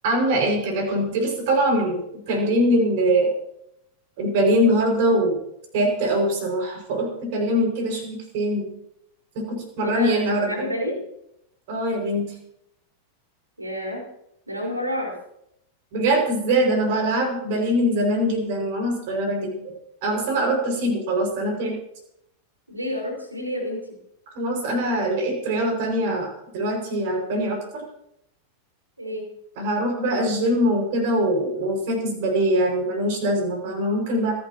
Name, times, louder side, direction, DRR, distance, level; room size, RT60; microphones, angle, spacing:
voice 1, 0.0-3.3 4.2-5.4 5.7-8.7 9.3-10.5 11.7-12.3 15.9-19.5 20.0-21.8 24.3-27.8 29.6-34.3, right 1 dB, 50° right, 2 dB, 6.0 m, -23 dB
voice 2, 9.8-11.0 13.6-14.0 14.5-15.1 22.7-23.9 29.0-29.3, equal, 85° right, 0 dB, 5.1 m, -29 dB
26.5 x 12.0 x 3.0 m, 0.78 s
figure-of-eight pair, 90°, 0 cm